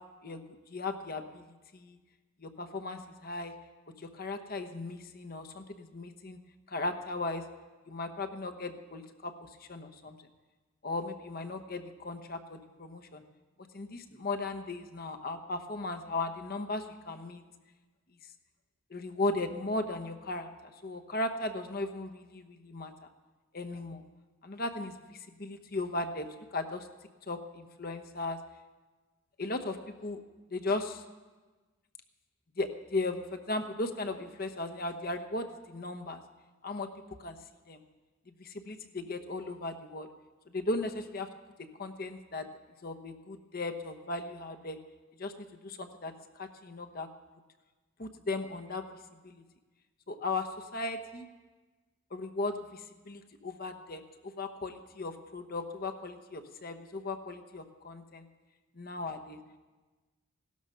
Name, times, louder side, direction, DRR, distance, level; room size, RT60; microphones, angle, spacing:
voice 1, 0.2-1.5 1.7-2.0 2.4-3.5 4.0-6.4 6.7-7.4 7.9-10.2 10.8-13.2 13.7-17.4 18.9-23.1 23.5-24.0 24.4-26.3 26.5-26.9 27.3-28.4 29.4-29.8 30.0-30.2 30.5-31.0 32.6-36.2 36.6-36.9 37.2-37.4 37.7-37.8 38.4-40.1 40.5-41.3 41.8-42.5 42.8-44.8 45.2-45.3 45.6-47.1 48.0-48.9 49.2-49.4 50.1-51.3 52.1-58.3 58.7-59.4, left 2 dB, 45° left, 7 dB, 1.0 m, -37 dB
17.0 x 12.5 x 5.6 m, 1.3 s
head